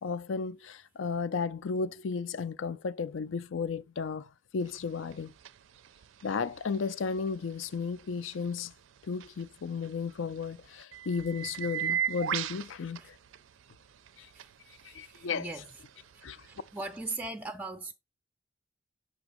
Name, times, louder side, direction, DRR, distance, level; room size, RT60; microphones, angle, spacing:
voice 1, 0.0-5.3 6.2-8.7 9.0-13.1 14.2-14.3 14.9-15.5 16.2-16.4, left 5 dB, 75° left, 0.5 m, -34 dB
sound 1, 4.6-17.1, right 9 dB, 75° right, 0.4 m, -41 dB
voice 2, 14.9-15.6 16.4-17.9, right 2 dB, 10° right, 0.4 m, -39 dB
7.0 x 3.0 x 4.9 m
head